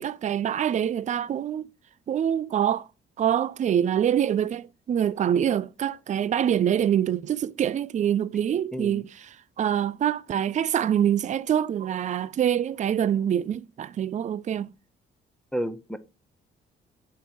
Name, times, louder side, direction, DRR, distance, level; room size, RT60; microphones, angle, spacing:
voice 1, 0.0-1.7 2.1-2.9 3.2-14.7, right 9 dB, 40° right, 0.4 m, -25 dB
voice 2, 8.7-9.0 15.5-16.0, equal, 5° left, 0.6 m, -31 dB
7.5 x 3.3 x 4.4 m
cardioid pair, 90°, 20 cm